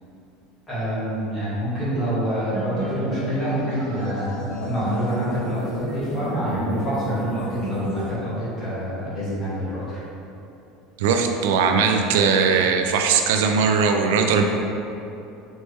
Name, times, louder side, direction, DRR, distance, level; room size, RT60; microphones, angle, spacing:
voice 1, 0.7-10.0, equal, 15° left, -12 dB, 1.5 m, -26 dB
sound 1, 2.5-8.1, equal, 85° left, 1.4 m, -32 dB
voice 2, 11.0-14.4, right 5 dB, 85° right, 4 dB, 0.3 m, -19 dB
4.2 x 3.2 x 3.3 m, 2.8 s
cardioid pair, 175°, 0 cm